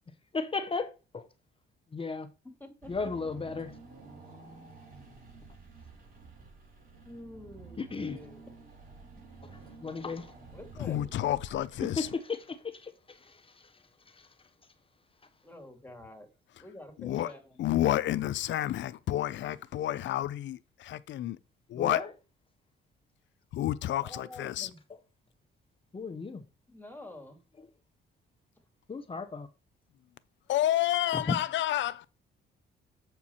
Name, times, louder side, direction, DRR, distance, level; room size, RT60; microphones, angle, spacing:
voice 1, 0.3-1.3 1.9-2.3 2.9-3.7 7.8-8.2 9.8-10.3 11.8-13.4 14.1-14.3 17.1-17.3 21.7-22.1 25.9-26.4 28.9-29.5 31.1-31.4, left 4 dB, 25° left, 0.9 m, -35 dB
voice 2, 2.4-3.1 4.5-4.7 7.0-8.5 10.5-11.1 15.4-16.3 16.6-18.2 24.0-24.8 26.7-27.4, left 1 dB, 10° left, 2.4 m, -48 dB
Car / Engine, 2.8-12.0, right 4 dB, 45° right, 4.8 m, -51 dB
voice 3, 10.8-12.1 17.0-17.3 17.6-21.4 21.7-22.0 23.5-24.7 30.5-32.0, left 13 dB, 70° left, 0.6 m, -30 dB
7.4 x 4.6 x 5.6 m
cardioid pair, 90°, 20 cm